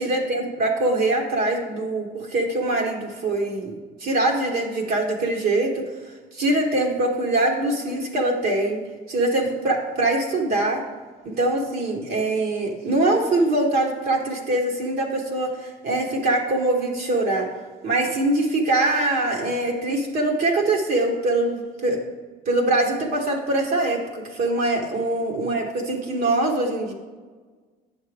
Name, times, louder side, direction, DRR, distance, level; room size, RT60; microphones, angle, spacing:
voice 1, 0.0-3.7 4.0-5.8 6.3-8.8 9.1-10.8 11.2-17.5 17.8-22.0 22.4-26.9, right 2 dB, 60° right, -1 dB, 1.3 m, -23 dB
8.9 x 6.5 x 3.4 m, 1.4 s
cardioid pair, 110°, 17 cm